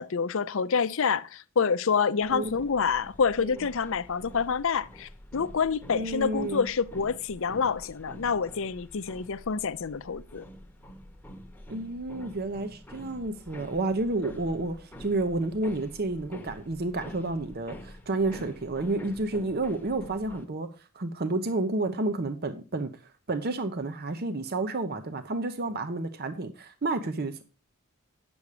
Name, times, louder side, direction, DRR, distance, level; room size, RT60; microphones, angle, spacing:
voice 1, 0.0-10.4, left 6 dB, 60° left, 0.6 m, -27 dB
sound 1, 2.2-20.5, equal, 10° left, 1.0 m, -47 dB
voice 2, 5.9-6.7 11.7-20.7 20.9-22.9 23.3-27.4, right 2 dB, 45° right, 0.7 m, -30 dB
9.5 x 7.1 x 4.9 m
head